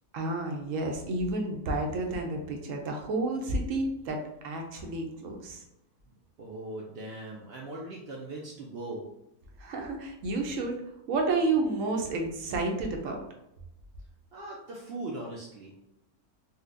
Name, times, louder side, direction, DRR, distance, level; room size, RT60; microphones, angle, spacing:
voice 1, 0.1-5.6 9.6-10.7 11.1-13.2, right 2 dB, 70° right, 2 dB, 0.9 m, -30 dB
voice 2, 6.4-9.1 14.3-15.7, right 2 dB, 90° right, -2 dB, 0.5 m, -39 dB
4.0 x 2.2 x 2.5 m, 0.87 s
omnidirectional pair, 1.6 m